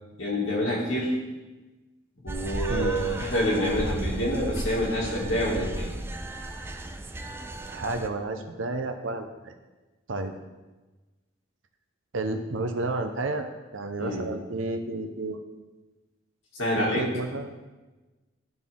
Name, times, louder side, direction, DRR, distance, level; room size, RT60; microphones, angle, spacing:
voice 1, 0.2-1.2 2.2-5.9 14.0-14.3 16.5-17.1, equal, 85° left, -4 dB, 2.3 m, -27 dB
sound 1, 2.3-8.1, right 1 dB, 10° right, 0.4 m, -34 dB
voice 2, 7.7-9.6 10.1-10.3 12.1-13.5 13.7-15.4 16.8-17.5, right 2 dB, 75° right, 6 dB, 0.8 m, -31 dB
12.0 x 4.1 x 3.7 m, 1.2 s
head